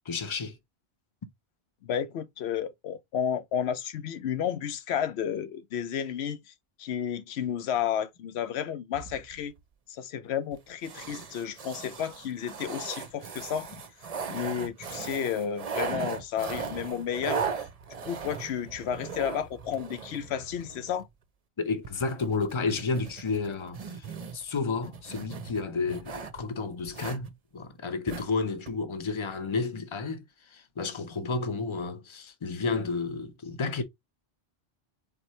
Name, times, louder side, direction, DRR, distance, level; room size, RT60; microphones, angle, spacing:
voice 1, 0.1-0.6 21.6-24.1 24.3-33.8, left 4 dB, 30° left, 0.8 m, -31 dB
voice 2, 1.8-6.4 6.8-9.5 9.9-13.7 14.3-17.4 18.0-21.1, left 9 dB, 90° left, 0.9 m, -32 dB
sound 1, 8.9-9.6 10.5-10.6 10.8-21.1 21.8-26.4 26.9-27.3 28.1-28.3 28.7-28.8, right 5 dB, 40° right, 0.7 m, -38 dB
4.3 x 3.8 x 3.1 m
omnidirectional pair, 1.1 m